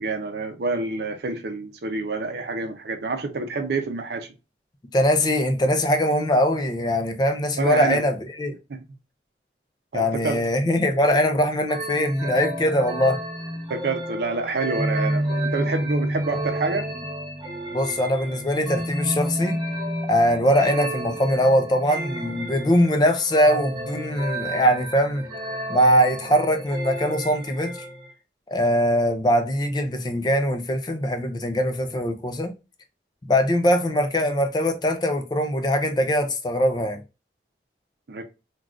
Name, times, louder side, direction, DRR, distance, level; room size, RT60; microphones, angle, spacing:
voice 1, 0.0-4.3 7.6-8.0 8.7-8.8 9.9-10.4 13.7-16.9 38.1-38.2, right 3 dB, 70° right, 0.5 m, -27 dB
voice 2, 4.9-8.5 9.9-13.2 17.7-19.6 20.1-25.3 25.7-27.7 28.5-32.5 33.3-37.0, equal, 25° left, 0.4 m, -22 dB
sound 1, 11.7-28.1, right 1 dB, 25° right, 0.8 m, -30 dB
3.6 x 2.3 x 2.3 m
head